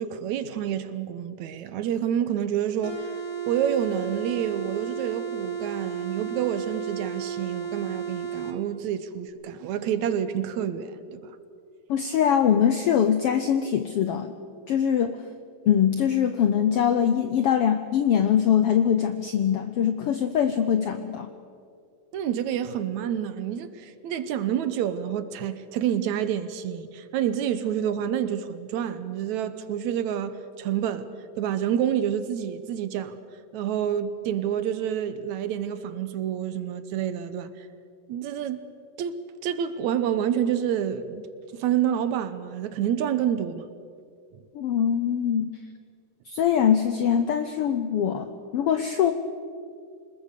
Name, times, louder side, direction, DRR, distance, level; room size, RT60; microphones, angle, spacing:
voice 1, 0.0-3.2 3.5-11.4 22.1-31.1 31.4-33.2 33.5-37.7 38.1-38.7 39.0-43.7 44.3-44.4, right 9 dB, 75° right, 2.1 m, -28 dB
sound 1, 2.8-8.6, right 7 dB, 20° left, 0.7 m, -33 dB
voice 2, 11.9-14.3 14.7-15.2 15.7-21.3 44.5-45.5 46.3-48.3 48.5-49.1, left 8 dB, 75° left, 1.3 m, -22 dB
26.0 x 20.5 x 6.7 m
omnidirectional pair, 3.6 m